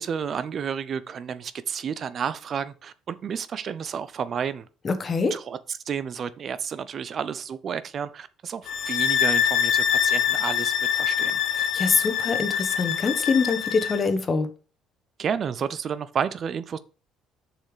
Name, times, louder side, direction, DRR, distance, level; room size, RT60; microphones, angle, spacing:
voice 1, 0.0-4.7 5.3-5.6 5.9-11.4 15.2-16.8, right 7 dB, 45° right, 0.5 m, -31 dB
voice 2, 4.8-5.3 11.5-14.5, left 4 dB, 30° left, 1.2 m, -24 dB
sound 1, 8.7-14.0, left 9 dB, 75° left, 0.9 m, -24 dB
7.0 x 5.6 x 5.0 m
cardioid pair, 115°, 0 cm